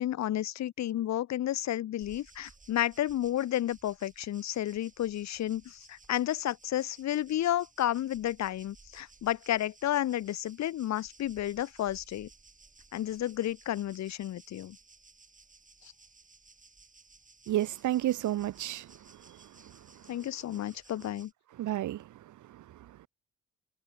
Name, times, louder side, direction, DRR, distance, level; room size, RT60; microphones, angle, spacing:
voice 1, 0.0-12.3 12.9-14.8 20.1-21.3, left 12 dB, 65° left, 1.0 m, -31 dB
sound 1, 2.0-21.3, right 4 dB, 25° right, 7.8 m, -58 dB
voice 2, 17.5-18.9 19.3-19.7 21.6-22.1 22.5-22.6, right 13 dB, 75° right, 2.1 m, -31 dB
cardioid pair, 90°, 30 cm